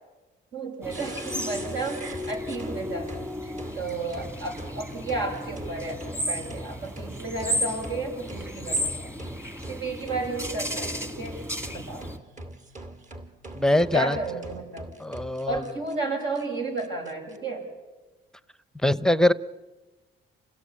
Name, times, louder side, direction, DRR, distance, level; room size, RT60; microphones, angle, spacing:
voice 1, 0.5-9.1 9.7-11.4 11.7-12.1 13.9-14.9 15.5-17.7, right 3 dB, 70° right, 2 dB, 7.8 m, -33 dB
sound 1, 0.8-12.2, equal, 15° right, 1.8 m, -34 dB
sound 2, 0.9-16.0 16.4-16.5 16.8-17.4, right 1 dB, 40° right, 2.6 m, -43 dB
voice 2, 13.5-14.2 15.0-15.6 18.8-19.3, left 1 dB, 5° left, 15 dB, 0.8 m, -22 dB
28.0 x 16.5 x 8.6 m, 1.2 s
cardioid pair, 90°, 20 cm